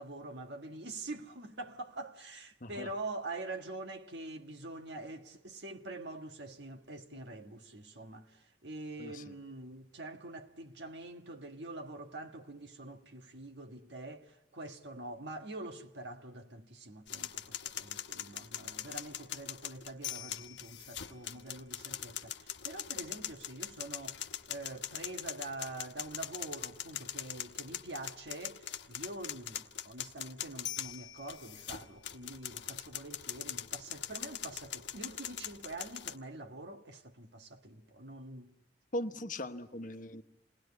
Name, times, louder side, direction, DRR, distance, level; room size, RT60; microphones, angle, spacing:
voice 1, 0.0-38.5, right 2 dB, 75° right, 1.6 m, -45 dB
sound 1, 17.1-36.2, left 10 dB, 85° left, 1.1 m, -42 dB
voice 2, 38.9-40.2, left 1 dB, 50° left, 1.1 m, -39 dB
28.0 x 19.5 x 9.6 m
head